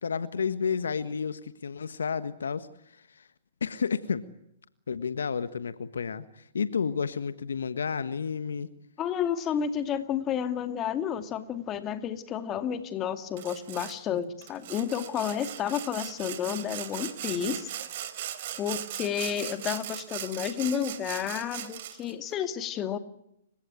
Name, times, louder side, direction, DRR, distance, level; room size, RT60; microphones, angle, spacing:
voice 1, 0.0-2.7 3.2-3.3 3.6-4.2 4.9-8.7, left 6 dB, 75° left, 13 dB, 1.4 m, -31 dB
voice 2, 9.0-17.7 18.6-23.0, left 9 dB, 25° left, 9 dB, 2.4 m, -31 dB
Sawing, 13.4-14.0 14.4-22.1, right 11 dB, 50° right, 3.3 m, -38 dB
30.0 x 17.0 x 9.1 m, 0.79 s
hypercardioid pair, 125°, 0 cm